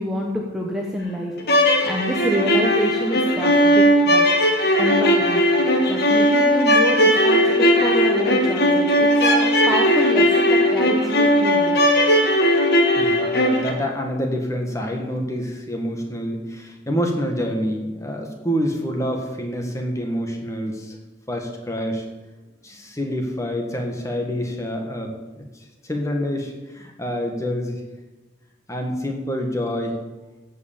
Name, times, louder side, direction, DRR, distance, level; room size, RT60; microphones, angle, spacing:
voice 1, 0.0-1.3 1.8-4.3 4.8-5.4 5.9-11.8, equal, ahead, -2 dB, 1.1 m, -27 dB
sound 1, 1.4-13.7, equal, 55° left, 1.7 m, -17 dB
voice 2, 13.0-21.0 21.3-22.0 22.6-25.1 25.8-27.8 28.7-29.9, equal, 15° left, 2 dB, 1.6 m, -27 dB
15.5 x 5.6 x 7.4 m, 1.2 s
head